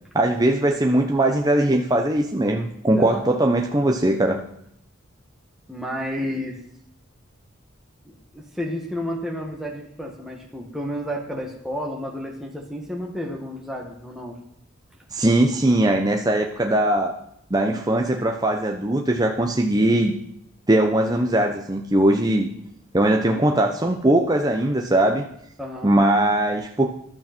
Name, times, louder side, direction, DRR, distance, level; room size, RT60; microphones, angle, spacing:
voice 1, 0.1-4.4 15.1-17.2 17.5-20.1 20.7-22.5 22.9-25.2 25.8-26.9, right 1 dB, 20° right, 2 dB, 1.0 m, -20 dB
voice 2, 2.9-3.3 5.7-6.6 8.0-14.4 25.6-25.9, equal, ahead, -1 dB, 2.0 m, -31 dB
14.5 x 12.5 x 4.5 m, 0.69 s
head